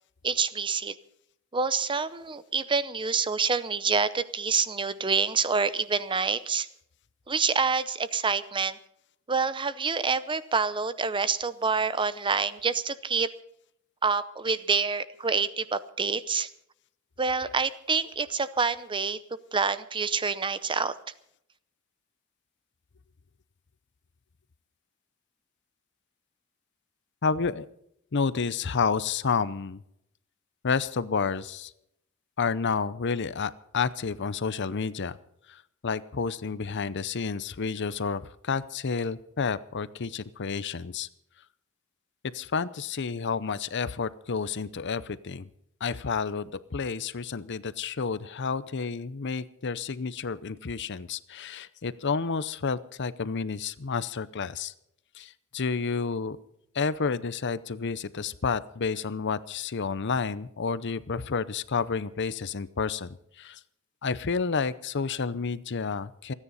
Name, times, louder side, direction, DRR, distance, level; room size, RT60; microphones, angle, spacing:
voice 1, 0.2-1.0 1.5-6.7 7.3-8.8 9.3-13.3 14.0-16.5 17.2-19.2 19.5-20.9, right 5 dB, 25° right, 15 dB, 0.7 m, -27 dB
voice 2, 27.2-27.6 28.1-29.8 30.6-31.7 32.4-35.2 35.5-35.6 35.8-41.1 42.3-45.5 45.8-54.7 55.2-56.4 56.7-63.1 63.4-63.6 64.0-66.3, left 5 dB, 55° left, 16 dB, 0.7 m, -30 dB
28.5 x 9.9 x 4.1 m, 0.74 s
head